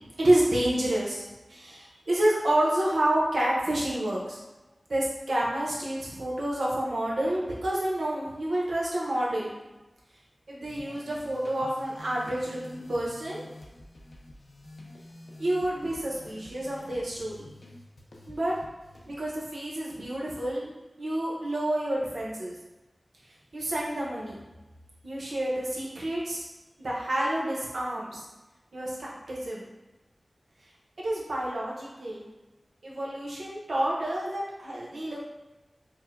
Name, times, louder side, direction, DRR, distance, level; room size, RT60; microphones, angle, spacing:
voice 1, 0.2-4.4 4.9-9.5 10.5-13.4 15.4-17.5 18.3-18.5 19.1-20.7 21.0-22.6 23.5-24.4 25.0-26.4 26.8-28.2 28.7-29.7 31.0-32.2 32.8-35.2, right 1 dB, 90° right, -5 dB, 0.8 m, -29 dB
sound 1, 10.7-19.4, left 1 dB, 85° left, 0.6 m, -49 dB
4.6 x 2.1 x 2.5 m, 1.1 s
cardioid pair, 40°, 0 cm